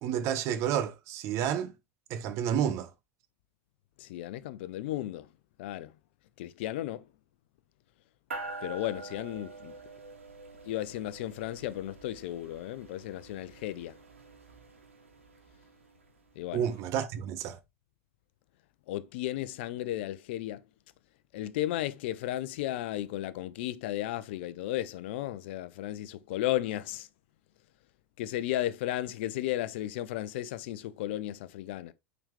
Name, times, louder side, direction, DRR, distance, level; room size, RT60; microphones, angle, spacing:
voice 1, 0.0-1.7 2.1-2.9 16.5-17.6, right 9 dB, 45° right, 0.9 m, -30 dB
voice 2, 4.0-5.3 5.6-5.9 6.4-7.0 8.6-9.7 10.6-13.9 16.4-16.6 18.9-20.6 21.3-27.1 28.2-31.9, left 14 dB, 60° left, 0.7 m, -34 dB
sound 1, 8.3-16.0, right 3 dB, 80° right, 1.9 m, -46 dB
8.8 x 4.0 x 3.3 m
figure-of-eight pair, 85°, 7 cm